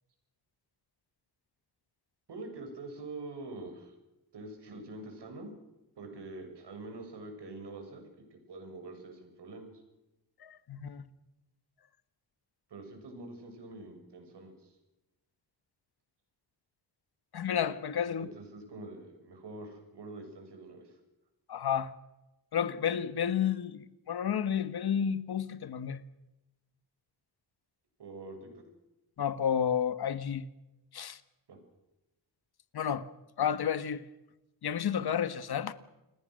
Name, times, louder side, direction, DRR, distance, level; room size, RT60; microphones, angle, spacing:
voice 1, 2.3-3.9 4.3-5.5 6.0-9.7 12.7-14.8 18.2-21.0 28.0-28.6 31.5-31.6, right 2 dB, 70° right, 7.1 m, -45 dB
voice 2, 10.4-11.0 17.3-18.3 21.5-21.9 22.5-26.0 29.2-30.4 30.9-31.2 32.7-33.1 33.4-34.0 34.6-35.7, left 8 dB, 60° left, 1.4 m, -31 dB
29.0 x 20.0 x 6.5 m
wide cardioid pair, 115°, 43 cm